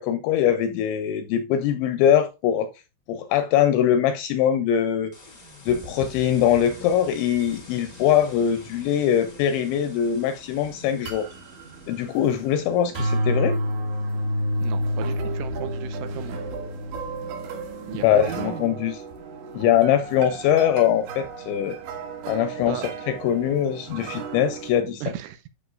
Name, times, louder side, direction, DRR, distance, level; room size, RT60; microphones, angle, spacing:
voice 1, 0.0-2.7 3.1-5.1 5.7-11.3 11.9-13.6 18.0-19.0 19.5-21.8 22.3-25.0, left 9 dB, 85° left, 2.6 m, -22 dB
sound 1, 5.1-13.3, left 3 dB, 40° left, 0.8 m, -49 dB
sound 2, 5.7-24.7, right 1 dB, 65° right, 4.2 m, -32 dB
voice 2, 14.6-16.4 17.9-18.8 22.6-22.8 25.0-25.5, right 12 dB, 80° right, 2.9 m, -35 dB
12.0 x 6.4 x 2.4 m
omnidirectional pair, 5.8 m